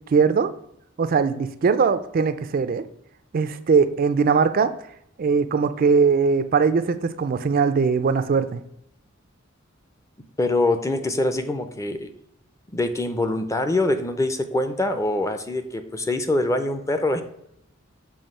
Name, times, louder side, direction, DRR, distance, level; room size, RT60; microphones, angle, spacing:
voice 1, 0.1-0.5 1.0-2.8 3.3-4.7 5.2-8.6, right 5 dB, 45° right, 11 dB, 0.4 m, -20 dB
voice 2, 10.4-12.1 12.7-17.2, left 2 dB, 15° left, 8 dB, 0.5 m, -24 dB
7.0 x 3.1 x 5.4 m, 0.75 s
head